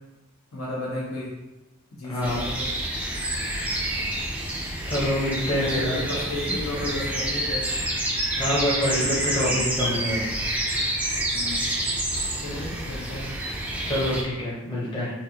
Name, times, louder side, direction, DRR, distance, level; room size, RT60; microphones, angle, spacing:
voice 1, 0.5-1.4 1.9-2.7 5.4-7.8 11.3-11.7 12.4-13.4, left 1 dB, 80° left, -5 dB, 1.1 m, -33 dB
voice 2, 2.1-2.4 4.9-6.0 8.4-10.3 13.8-15.1, left 1 dB, 20° left, -7 dB, 0.7 m, -26 dB
sound 1, 2.2-14.2, right 1 dB, 5° right, 0.3 m, -28 dB
4.1 x 2.4 x 2.7 m, 1.0 s
head